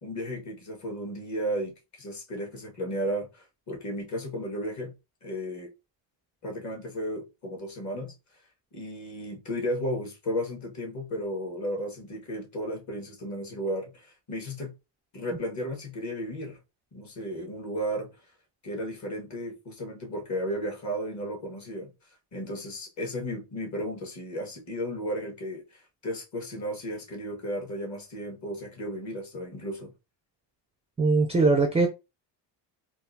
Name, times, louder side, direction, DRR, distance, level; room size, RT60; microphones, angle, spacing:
voice 1, 0.0-4.9 5.2-5.7 6.4-8.1 8.7-14.7 15.1-16.6 16.9-18.1 18.6-21.9 22.3-25.6 26.0-29.9, equal, 35° left, 1.4 m, -34 dB
voice 2, 31.0-31.9, right 3 dB, 15° right, 0.3 m, -21 dB
3.8 x 2.4 x 2.6 m
cardioid pair, 150°, 48 cm